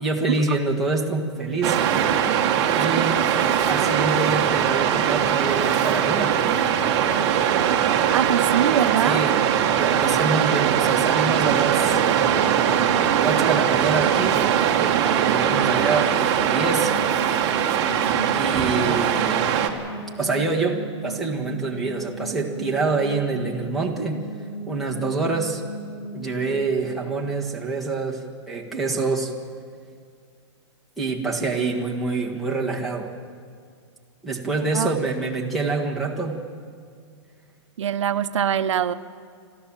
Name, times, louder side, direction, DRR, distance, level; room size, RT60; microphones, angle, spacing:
voice 1, 0.0-1.8 2.7-3.2 3.7-6.4 9.0-9.3 9.7-12.0 13.2-14.4 15.2-16.9 18.3-19.5 20.2-24.2 24.7-25.6 26.1-29.3 31.0-33.1 34.2-36.4, right 3 dB, ahead, 1 dB, 1.5 m, -26 dB
Waves surf, 1.6-19.7, right 9 dB, 25° right, 1.4 m, -21 dB
sound 1, 7.1-15.4, right 10 dB, 50° right, 0.9 m, -28 dB
voice 2, 8.1-9.2 18.1-18.4 34.7-34.9 37.8-38.9, right 9 dB, 80° right, 11 dB, 0.8 m, -23 dB
sound 2, 15.2-28.1, equal, 85° left, 7.5 m, -36 dB
28.5 x 13.5 x 7.4 m, 2.2 s
hypercardioid pair, 170°, 15 cm